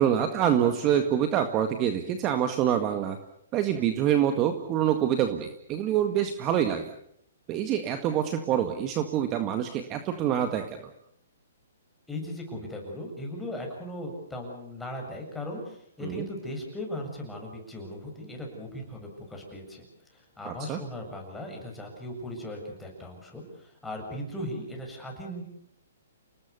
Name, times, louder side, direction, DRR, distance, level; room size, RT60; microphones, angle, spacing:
voice 1, 0.0-3.2 3.5-6.8 7.5-10.9 16.0-16.2 20.5-20.8, right 10 dB, 25° right, 7 dB, 1.8 m, -26 dB
voice 2, 12.1-19.9 20.1-25.4, left 1 dB, 5° left, 0 dB, 7.4 m, -38 dB
29.5 x 19.5 x 6.9 m, 0.69 s
hypercardioid pair, 145°, 0 cm